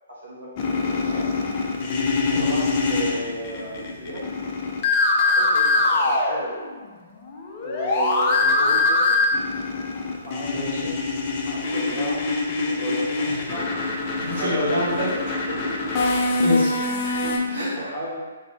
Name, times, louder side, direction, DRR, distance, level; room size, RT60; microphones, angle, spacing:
voice 1, 0.1-1.3 2.3-4.2 5.1-6.6 7.6-9.2 10.2-10.5 11.4-12.3 12.6-13.7 14.3-14.6 15.3-15.9 16.7-18.2, right 1 dB, 75° right, -8 dB, 1.0 m, -34 dB
sound 1, 0.6-6.9 7.2-17.4, left 3 dB, 35° left, 0.4 m, -23 dB
voice 2, 10.5-10.9 13.3-13.4 14.1-15.2 16.4-16.8 17.5-17.7, equal, 50° right, -8 dB, 1.0 m, -27 dB
2.6 x 2.5 x 3.3 m, 1.3 s
figure-of-eight pair, 125°, 0 cm